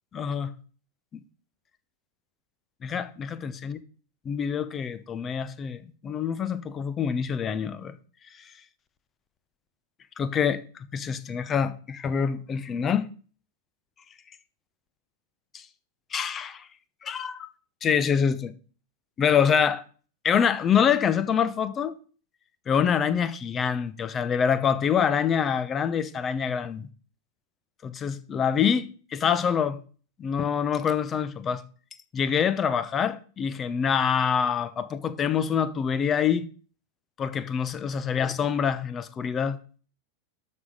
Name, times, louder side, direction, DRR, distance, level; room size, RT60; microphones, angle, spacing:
voice 1, 0.1-0.5 2.8-3.8 4.3-7.9 8.4-8.5 10.2-13.1 15.5-15.6 16.1-16.7 17.0-17.5 17.8-18.5 19.2-19.8 20.2-21.9 22.7-26.9 27.8-29.8 30.2-31.6 32.1-36.5 37.2-39.6, left 7 dB, 25° left, 0.9 m, -26 dB
12.5 x 6.5 x 5.1 m
figure-of-eight pair, 90°, 0 cm